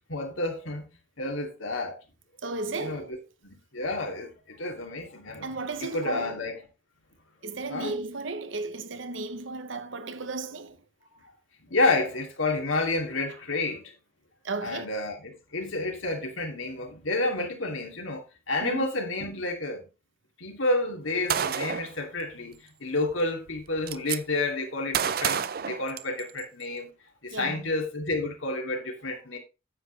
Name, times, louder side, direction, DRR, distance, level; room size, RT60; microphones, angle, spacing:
voice 1, 0.1-0.9 1.2-2.0 2.8-3.0 3.4-6.6 7.7-8.0 11.1-11.2 11.6-13.9 14.6-19.9 20.4-26.9 27.2-29.4, left 2 dB, 80° left, 2.7 m, -30 dB
voice 2, 2.4-3.1 5.4-6.4 7.4-10.8 14.4-14.9 18.6-18.9 27.3-27.7, right 3 dB, 70° right, 0.9 m, -34 dB
Gunshot gunfire, 21.3-21.9 23.1-23.2 23.5-24.2 24.9-26.4, right 8 dB, 50° right, 0.5 m, -29 dB
9.7 x 8.2 x 3.3 m
head